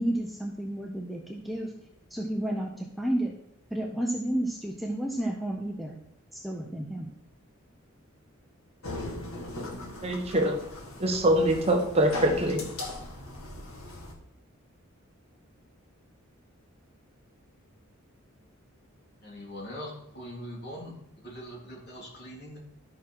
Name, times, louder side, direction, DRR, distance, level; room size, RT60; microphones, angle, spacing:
voice 1, 0.0-1.7 2.1-3.3 3.7-6.0 6.3-7.1, right 1 dB, ahead, 0 dB, 0.8 m, -31 dB
sound 1, 8.8-14.1, left 1 dB, 75° left, 2.0 m, -39 dB
voice 2, 10.0-10.6 11.0-12.7, right 1 dB, 30° right, 3 dB, 1.0 m, -24 dB
voice 3, 19.2-22.6, equal, 50° left, -2 dB, 3.2 m, -42 dB
12.5 x 6.0 x 4.8 m, 0.74 s
head